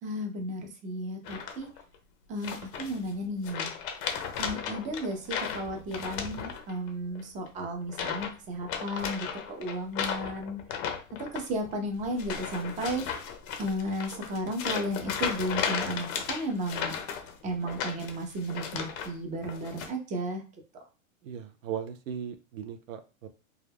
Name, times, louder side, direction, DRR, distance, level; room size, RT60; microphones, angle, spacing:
voice 1, 0.0-1.7 2.3-3.7 4.4-10.6 11.2-13.0 13.6-16.9 17.4-20.4, equal, 20° right, 3 dB, 0.6 m, -34 dB
sound 1, 1.2-1.8 2.4-3.1 3.4-6.9 7.1-7.5 7.9-8.3 8.6-19.1 19.4-19.9, left 7 dB, 35° left, 0.5 m, -35 dB
voice 2, 21.2-23.3, right 8 dB, 75° right, 8 dB, 0.6 m, -38 dB
2.3 x 2.0 x 3.3 m, 0.34 s
hypercardioid pair, 120°, 40 cm